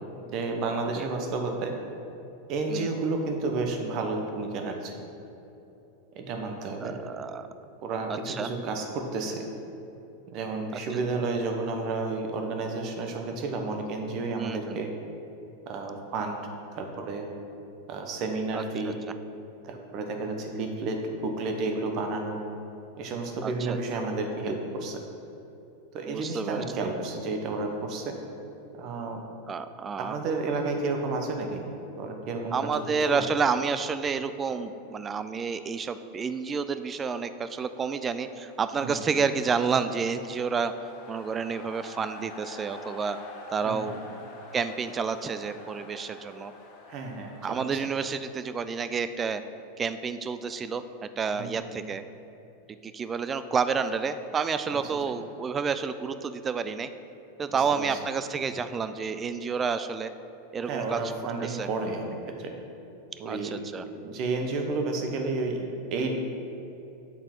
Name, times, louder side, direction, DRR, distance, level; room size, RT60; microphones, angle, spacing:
voice 1, 0.0-1.7 2.5-5.0 6.1-7.0 7.8-9.4 10.3-14.9 15.7-16.4 16.7-17.3 17.9-19.0 19.6-22.4 23.0-25.0 25.9-28.2 28.7-29.2 30.0-31.6 32.0-33.3 38.8-39.1 43.6-44.0 46.9-47.8 51.3-51.8 54.7-54.8 57.5-58.0 60.6-62.5 63.2-63.6 63.9-66.2, right 3 dB, 45° right, 3 dB, 0.9 m, -31 dB
voice 2, 6.8-7.5 8.1-8.5 10.9-11.0 14.3-14.8 18.5-18.9 23.4-23.8 26.1-26.6 29.5-30.2 32.5-43.2 43.5-44.0 44.5-46.5 47.4-49.4 49.8-52.0 52.8-56.9 57.4-60.1 60.5-61.0 61.4-61.7 63.3-63.9, right 5 dB, 25° right, 11 dB, 0.3 m, -30 dB
sound 1, 37.3-49.3, left 3 dB, 50° left, 1.0 m, -48 dB
6.9 x 3.7 x 4.4 m, 2.9 s
hypercardioid pair, 110°, 0 cm